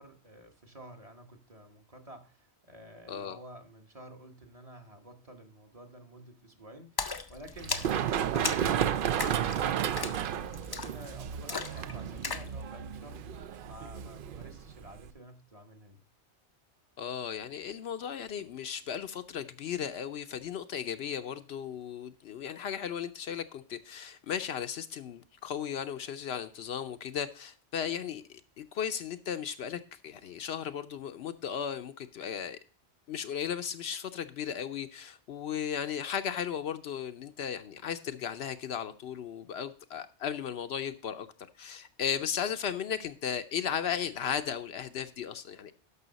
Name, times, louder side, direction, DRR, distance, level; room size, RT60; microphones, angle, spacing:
voice 1, 0.0-16.0, right 1 dB, 30° right, 1.2 m, -50 dB
Splash splatter, 7.0-12.5, left 4 dB, 35° left, 0.3 m, -38 dB
Run, 7.6-15.1, right 9 dB, 60° right, 0.6 m, -32 dB
voice 2, 17.0-28.2 28.6-32.6 33.1-41.3 41.6-45.7, left 8 dB, 70° left, 0.8 m, -36 dB
12.5 x 5.6 x 4.0 m
omnidirectional pair, 1.2 m